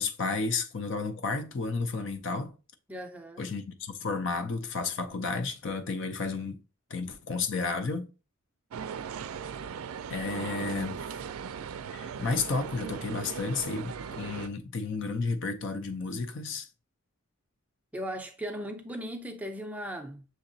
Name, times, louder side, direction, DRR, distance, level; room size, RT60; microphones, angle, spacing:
voice 1, 0.0-2.5 3.4-6.6 6.9-8.1 10.1-11.0 11.9-16.7, left 4 dB, 60° left, 0.5 m, -32 dB
voice 2, 2.9-3.5 17.9-20.3, equal, 5° right, 0.5 m, -37 dB
sound 1, 8.7-14.5, right 7 dB, 80° right, 0.4 m, -38 dB
6.3 x 2.9 x 2.7 m
head